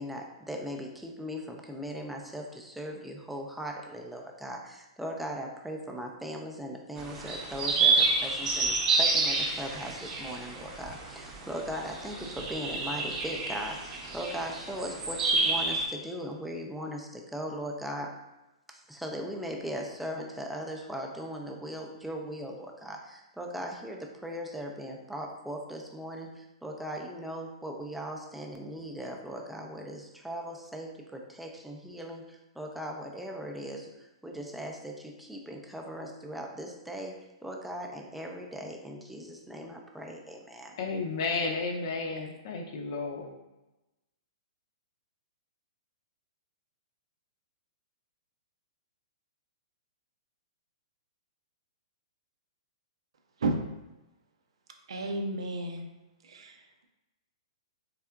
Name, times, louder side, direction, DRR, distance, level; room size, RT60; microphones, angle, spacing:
voice 1, 0.0-18.2 18.7-40.8, equal, 5° right, 1 dB, 0.4 m, -39 dB
sound 1, 7.0-15.9, right 3 dB, 25° right, 0.7 m, -29 dB
voice 2, 40.8-43.4, left 4 dB, 55° left, 3 dB, 0.6 m, -32 dB
voice 3, 54.9-55.9 56.2-56.8, right 2 dB, 75° right, 4 dB, 0.6 m, -32 dB
3.5 x 3.4 x 2.3 m, 1.0 s
hypercardioid pair, 120°, 3 cm